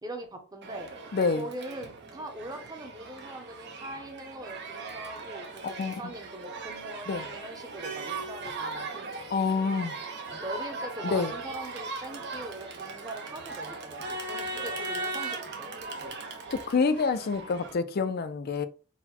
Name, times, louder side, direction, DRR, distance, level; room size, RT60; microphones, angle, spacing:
voice 1, 0.0-0.9 1.3-5.5 5.8-9.3 10.3-16.2, right 1 dB, 20° right, 0.8 m, -42 dB
Crowd, 0.6-17.7, right 3 dB, 55° right, 0.7 m, -38 dB
voice 2, 1.1-1.5 5.6-6.0 7.1-7.3 9.3-10.0 11.0-11.3 16.5-18.7, left 4 dB, 50° left, 0.4 m, -27 dB
4.1 x 2.2 x 4.2 m
head